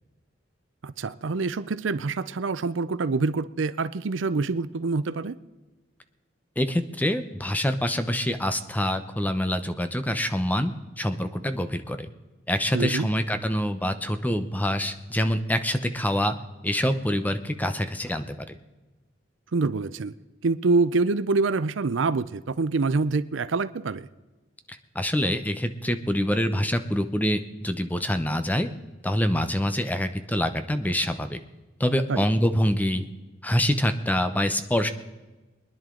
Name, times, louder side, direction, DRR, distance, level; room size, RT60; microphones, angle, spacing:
voice 1, 0.8-5.4 12.7-13.1 19.5-20.1 20.4-24.1 32.1-32.3, right 3 dB, 80° right, 0.6 m, -26 dB
voice 2, 6.6-12.1 12.5-16.4 16.6-18.6 24.9-28.7 29.0-31.4 31.8-33.1 33.4-34.9, equal, 10° left, 0.7 m, -25 dB
23.5 x 10.5 x 3.8 m
head